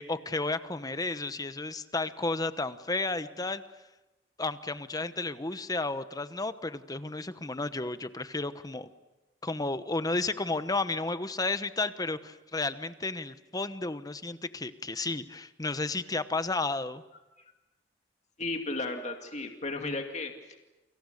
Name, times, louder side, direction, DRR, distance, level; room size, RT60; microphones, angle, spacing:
voice 1, 0.0-3.6 4.4-8.9 9.4-17.0, left 3 dB, 20° left, 12 dB, 1.0 m, -32 dB
voice 2, 18.4-20.6, left 2 dB, 40° left, 4 dB, 2.4 m, -34 dB
29.5 x 26.5 x 6.6 m, 1.1 s
head